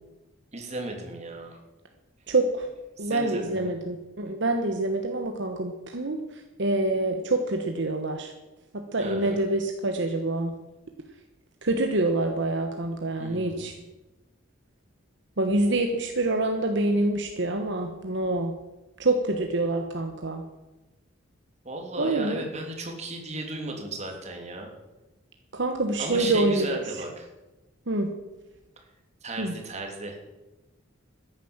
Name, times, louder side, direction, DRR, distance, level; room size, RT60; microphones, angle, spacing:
voice 1, 0.5-1.6 3.0-3.8 9.0-9.4 13.2-13.7 21.6-24.7 26.0-27.3 29.2-30.2, right 2 dB, 35° right, 2 dB, 3.0 m, -35 dB
voice 2, 2.3-2.7 3.0-8.3 8.7-10.5 11.6-13.7 15.4-18.5 19.0-20.4 22.0-22.4 25.5-27.0 27.9-28.2 29.4-29.5, right 2 dB, 60° right, 4 dB, 1.2 m, -26 dB
13.5 x 10.5 x 7.3 m, 1.1 s
head